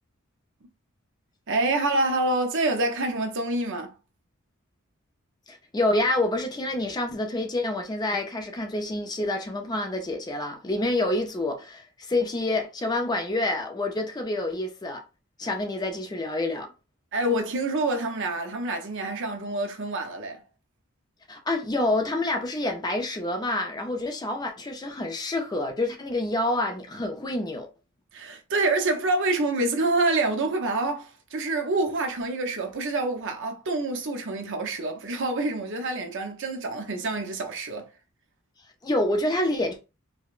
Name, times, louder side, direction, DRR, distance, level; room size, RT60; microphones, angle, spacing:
voice 1, 1.5-3.9 17.1-20.4 28.1-37.9, right 2 dB, 55° right, 0.7 m, -27 dB
voice 2, 5.5-15.0 15.4-16.7 21.3-27.7 38.8-39.8, left 2 dB, 20° left, 0.4 m, -27 dB
4.9 x 2.0 x 2.4 m
head